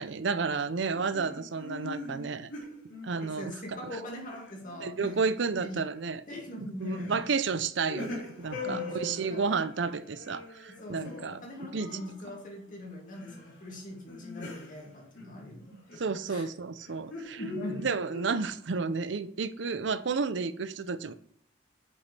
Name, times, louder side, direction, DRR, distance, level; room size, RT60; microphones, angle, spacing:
voice 1, 0.0-2.5 3.0-3.8 4.8-6.2 6.8-11.9 15.7-17.4 17.8-21.1, right 4 dB, 70° right, 12 dB, 0.6 m, -31 dB
sound 1, 0.9-3.9 4.2-5.4 5.8-6.2 6.8-7.3 7.6-12.7 13.1-13.5 13.9-16.1 16.8-18.3, left 2 dB, 80° left, 3.3 m, -42 dB
voice 2, 3.4-5.2 5.6-5.9 6.3-7.2 8.6-9.6 10.8-16.0 16.3-16.5 17.4-17.9, left 1 dB, 45° left, -1 dB, 2.3 m, -41 dB
8.4 x 5.2 x 3.3 m, 0.64 s
head